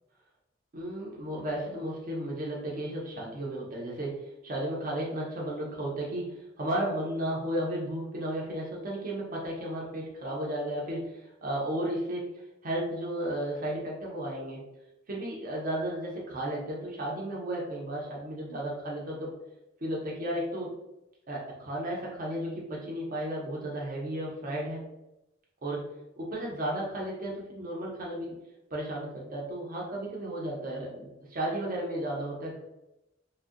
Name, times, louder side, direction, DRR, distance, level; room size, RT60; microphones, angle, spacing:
voice 1, 0.7-12.3 12.6-14.6 15.1-19.3 19.8-20.8 21.3-24.9 25.6-25.9 26.2-28.3 28.7-32.6, right 1 dB, 50° right, -3 dB, 0.6 m, -34 dB
2.6 x 2.1 x 2.4 m, 0.90 s
head